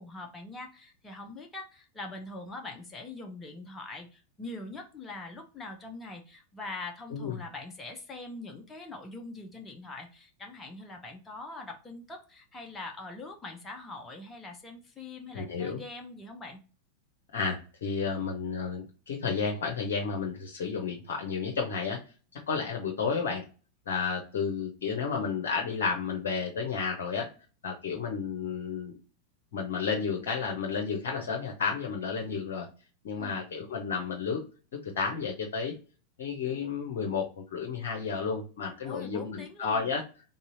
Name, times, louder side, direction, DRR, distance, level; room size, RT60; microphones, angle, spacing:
voice 1, 0.0-16.6 33.2-33.4 38.8-39.9, left 2 dB, 15° left, 2 dB, 0.8 m, -43 dB
voice 2, 15.3-15.8 17.3-22.0 22.5-23.4 23.9-27.3 27.6-28.9 29.5-32.7 33.0-34.4 34.8-35.7 36.2-40.0, left 5 dB, 55° left, 1 dB, 0.8 m, -32 dB
4.1 x 3.6 x 2.6 m, 0.35 s
figure-of-eight pair, 90°, 0 cm